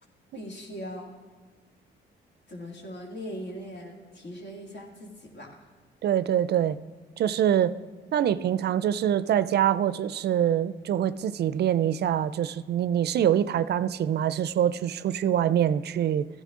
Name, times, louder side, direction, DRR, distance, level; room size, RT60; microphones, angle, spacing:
voice 1, 0.3-1.1 2.5-5.6, equal, 65° left, 1 dB, 2.3 m, -40 dB
voice 2, 6.0-6.8 7.2-7.7 8.1-16.3, right 10 dB, 55° right, 16 dB, 0.4 m, -24 dB
14.5 x 10.5 x 3.7 m, 1.5 s
cardioid pair, 90°, 20 cm